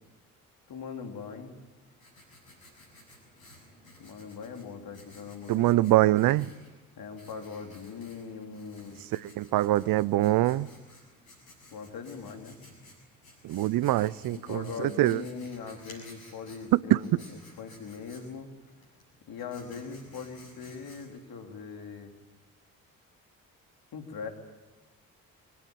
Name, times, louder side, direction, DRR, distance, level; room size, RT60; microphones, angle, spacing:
voice 1, 0.7-1.5 4.0-6.1 7.0-9.0 11.7-12.6 14.3-18.5 19.3-22.1 23.9-24.3, left 5 dB, 60° left, 3.7 m, -41 dB
Writing, 1.6-21.4, left 1 dB, 90° left, 7.2 m, -55 dB
voice 2, 5.5-6.5 9.1-10.7 13.4-15.2 16.7-17.0, right 16 dB, 60° right, 0.7 m, -24 dB
23.5 x 18.0 x 9.4 m
hypercardioid pair, 45°, 40 cm